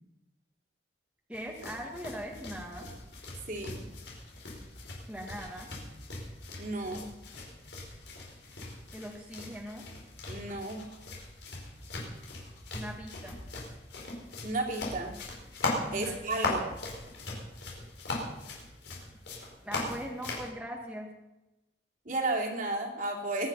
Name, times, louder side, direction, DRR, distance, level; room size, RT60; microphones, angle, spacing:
sound 1, 1.3-20.5, left 2 dB, 80° left, 4.7 m, -39 dB
voice 1, 1.3-2.9 5.1-5.7 8.9-9.9 12.7-13.4 15.9-16.2 19.6-21.1, equal, 5° right, -1 dB, 1.8 m, -40 dB
voice 2, 3.5-3.8 6.6-7.1 10.3-10.8 14.4-15.1 15.9-16.7 22.0-23.5, right 2 dB, 50° right, 0 dB, 2.9 m, -33 dB
22.5 x 9.7 x 5.6 m, 0.99 s
head